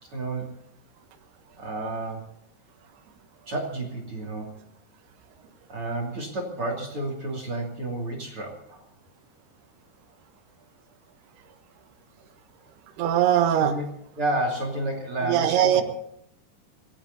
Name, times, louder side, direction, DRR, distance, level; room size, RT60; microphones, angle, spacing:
voice 1, 0.1-0.5 1.6-2.3 3.5-4.5 5.7-8.8 13.4-13.8 14.2-15.8, right 2 dB, 35° right, 2 dB, 3.1 m, -31 dB
voice 2, 13.0-13.8 15.3-15.8, right 10 dB, 80° right, 7 dB, 3.3 m, -20 dB
26.0 x 17.5 x 2.8 m, 0.73 s
omnidirectional pair, 4.5 m